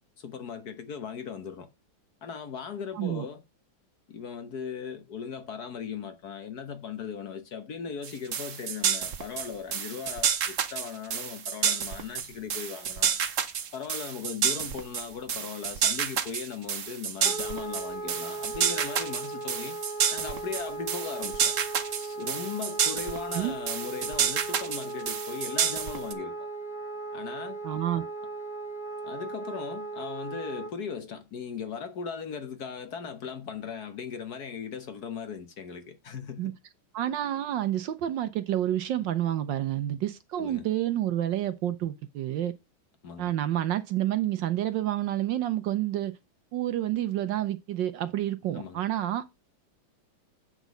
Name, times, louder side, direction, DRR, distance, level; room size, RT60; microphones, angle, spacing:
voice 1, 0.2-1.7 2.2-3.4 4.1-13.2 13.7-19.8 20.1-21.5 21.9-26.4 27.1-27.6 29.0-36.6 40.4-40.6 43.0-43.3 48.5-48.8, left 6 dB, 55° left, 1.4 m, -38 dB
voice 2, 2.9-3.3 23.3-23.6 27.6-28.1 36.4-36.5 36.9-42.5 43.2-46.1 46.5-49.3, right 12 dB, 70° right, 1.3 m, -29 dB
sound 1, 8.0-26.1, right 7 dB, 55° right, 0.9 m, -29 dB
Wind instrument woodwind instrument, 17.2-30.7, right 3 dB, 25° right, 2.7 m, -37 dB
8.3 x 6.1 x 5.1 m
omnidirectional pair, 2.3 m